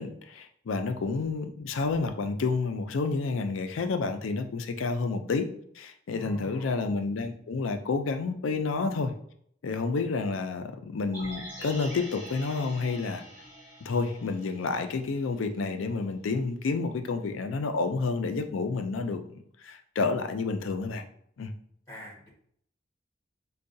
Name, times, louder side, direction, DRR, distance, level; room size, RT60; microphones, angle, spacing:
voice 1, 0.0-5.5 5.8-9.1 9.6-13.2 13.8-21.0 21.4-21.5, left 4 dB, 90° left, 7 dB, 0.4 m, -30 dB
voice 2, 6.2-6.9 21.9-22.3, equal, 15° left, -3 dB, 1.2 m, -45 dB
sound 1, 11.1-15.3 15.6-15.7, right 1 dB, 10° right, 1.5 m, -45 dB
4.5 x 2.3 x 2.6 m, 0.66 s
head